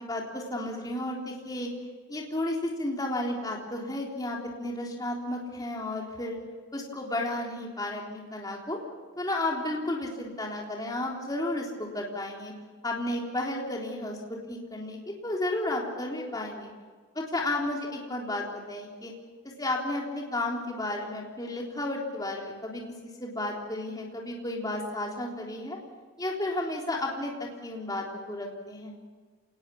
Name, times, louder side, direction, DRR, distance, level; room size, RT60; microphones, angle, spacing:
voice 1, 0.0-1.7 2.1-6.4 6.7-8.8 9.2-12.5 12.8-16.7 17.2-19.1 19.6-25.8 26.2-28.9, left 1 dB, 20° left, -1 dB, 3.6 m, -33 dB
28.0 x 19.5 x 7.2 m, 1.5 s
head